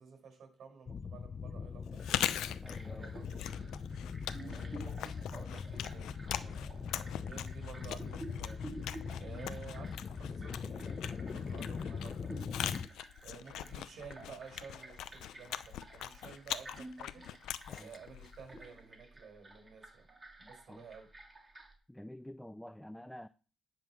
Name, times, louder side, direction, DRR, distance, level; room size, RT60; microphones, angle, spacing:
voice 1, 0.0-2.1 2.9-3.4 4.3-8.6 9.2-12.7 13.2-17.3 17.8-20.1 20.4-21.1, right 6 dB, 65° right, 5.5 m, -53 dB
sound 1, 0.9-12.9, left 6 dB, 45° left, 0.7 m, -41 dB
Chewing mastication, 1.9-18.8, left 11 dB, 85° left, 0.6 m, -42 dB
sound 2, 2.0-21.7, right 2 dB, 25° right, 2.5 m, -52 dB
voice 2, 2.6-3.1 13.5-13.7 17.7-17.9 20.7-20.9 21.9-23.3, left 1 dB, 5° left, 0.4 m, -49 dB
10.5 x 5.6 x 6.3 m
cardioid pair, 90°, 0 cm